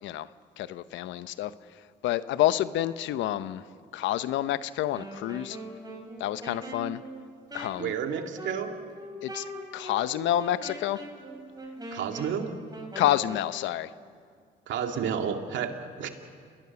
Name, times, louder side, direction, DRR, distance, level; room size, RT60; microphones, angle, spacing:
voice 1, 0.6-1.5 2.0-3.6 3.9-5.6 6.2-7.0 7.5-7.9 9.2-9.4 9.7-11.0 12.9-13.9, left 13 dB, 80° left, 14 dB, 0.8 m, -28 dB
Wind instrument woodwind instrument, 4.8-13.6, right 1 dB, 20° right, 6.7 m, -41 dB
voice 2, 7.8-8.8 11.9-12.5 14.7-16.1, right 7 dB, 75° right, 5 dB, 2.2 m, -31 dB
29.0 x 20.5 x 7.0 m, 2.2 s
supercardioid pair, 70°, 19 cm